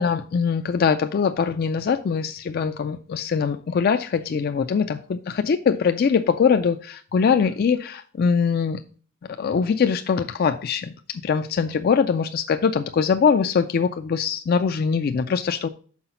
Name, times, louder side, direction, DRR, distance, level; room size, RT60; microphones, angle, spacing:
voice 1, 0.0-5.2 5.4-8.8 9.4-10.9 11.2-15.7, left 6 dB, 45° left, 9 dB, 0.3 m, -22 dB
5.9 x 4.7 x 5.5 m, 0.42 s
head